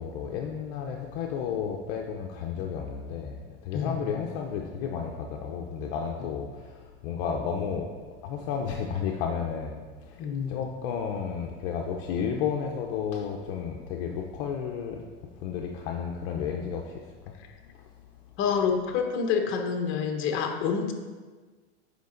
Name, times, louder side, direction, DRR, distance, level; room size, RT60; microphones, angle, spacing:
voice 1, 0.0-7.9 8.2-10.2 10.5-15.1 15.4-16.9, left 7 dB, 55° left, 1 dB, 0.8 m, -32 dB
voice 2, 10.2-10.6 18.4-20.9, left 6 dB, 40° left, 4 dB, 1.1 m, -27 dB
8.3 x 5.2 x 3.9 m, 1.4 s
supercardioid pair, 135°, 32 cm